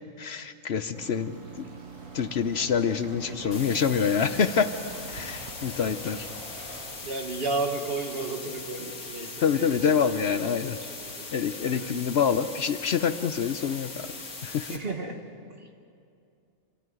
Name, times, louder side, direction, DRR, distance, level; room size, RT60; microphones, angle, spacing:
voice 1, 0.2-1.7 2.1-4.7 5.1-6.3 9.4-10.8 11.3-14.1 14.4-14.8, left 7 dB, 55° left, 11 dB, 0.9 m, -26 dB
sound 1, 0.9-7.1, right 7 dB, 80° right, 1.4 m, -45 dB
sound 2, 1.0-6.9, equal, 30° right, 7.6 m, -48 dB
voice 2, 3.0-4.0 7.0-10.1 10.6-11.9 14.7-15.2 15.5-15.7, right 3 dB, 45° right, 4 dB, 1.7 m, -34 dB
sound 3, 3.5-14.8, left 3 dB, 80° left, 2.3 m, -40 dB
25.5 x 14.5 x 9.2 m, 2.5 s
omnidirectional pair, 1.4 m